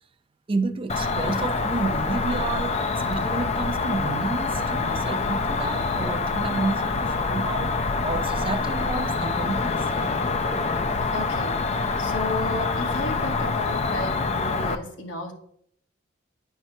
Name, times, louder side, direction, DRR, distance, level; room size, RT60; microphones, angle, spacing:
voice 1, 0.5-2.8 3.1-7.7 8.0-9.9, right 3 dB, 30° right, 9 dB, 0.5 m, -30 dB
Cricket, 0.9-14.8, left 4 dB, 35° left, 0.4 m, -26 dB
voice 2, 11.1-11.6 12.0-15.3, left 2 dB, 85° left, 2 dB, 1.2 m, -33 dB
9.6 x 4.6 x 2.7 m, 0.69 s
head